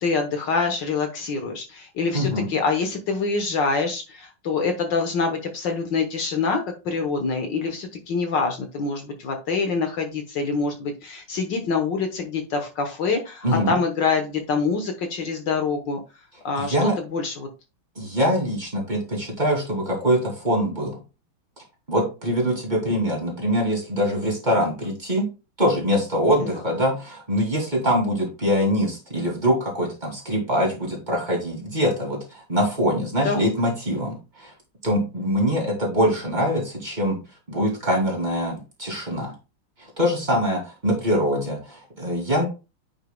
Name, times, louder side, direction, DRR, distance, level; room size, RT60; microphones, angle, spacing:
voice 1, 0.0-16.0 16.5-17.5 26.4-26.5 33.3-33.5, left 4 dB, 65° left, 5 dB, 1.7 m, -25 dB
voice 2, 2.1-2.5 13.4-13.7 16.6-16.9 18.0-21.0 21.9-25.3 25.6-34.5 34.8-37.2 37.5-39.3 39.8-42.5, equal, 20° right, -1 dB, 2.9 m, -23 dB
9.2 x 6.3 x 2.3 m, 0.30 s
omnidirectional pair, 2.3 m